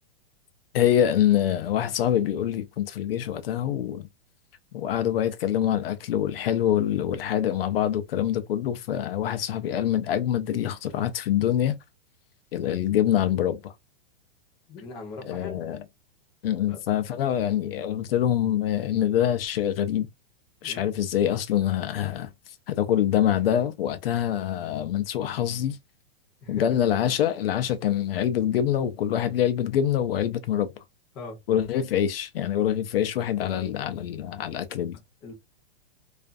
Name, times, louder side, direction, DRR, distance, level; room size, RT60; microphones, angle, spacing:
voice 1, 0.7-4.1 4.7-11.7 12.5-13.7 15.3-15.8 16.4-20.1 20.6-22.3 22.7-25.8 26.5-30.7 31.5-35.0, left 10 dB, 70° left, 0.5 m, -25 dB
voice 2, 14.7-15.6 16.7-16.8 20.6-20.9 26.4-26.6 31.1-31.4 35.2-35.3, left 3 dB, 15° left, 0.6 m, -40 dB
2.4 x 2.3 x 2.4 m
supercardioid pair, 170°, 30 cm